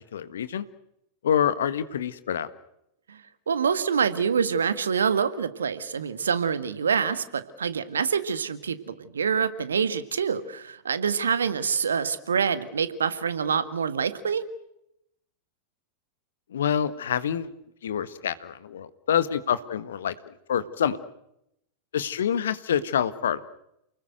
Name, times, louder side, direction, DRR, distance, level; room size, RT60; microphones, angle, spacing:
voice 1, 0.1-0.6 1.2-2.5 16.5-17.5 17.8-21.0 21.9-23.4, left 8 dB, 65° left, 14 dB, 1.5 m, -27 dB
voice 2, 3.5-14.4, right 6 dB, 70° right, 13 dB, 1.8 m, -26 dB
29.0 x 20.0 x 8.0 m, 0.81 s
figure-of-eight pair, 90°, 0 cm